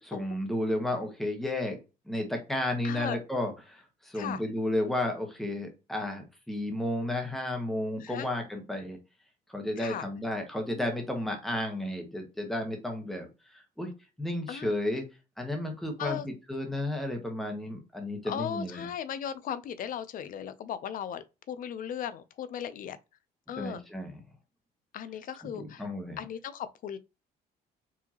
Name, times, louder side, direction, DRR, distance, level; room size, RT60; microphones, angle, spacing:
voice 1, 0.0-1.8 2.1-9.0 9.5-13.9 14.2-15.0 15.4-18.9 23.6-24.2 25.4-26.2, left 1 dB, ahead, 1.2 m, -33 dB
voice 2, 2.8-3.2 4.1-4.4 8.0-8.3 9.8-10.0 14.5-14.7 16.0-16.3 18.2-23.0 23.5-23.8 24.9-25.9 26.2-27.0, left 9 dB, 55° left, 0.5 m, -37 dB
4.7 x 2.8 x 2.9 m
cardioid pair, 110°, 17 cm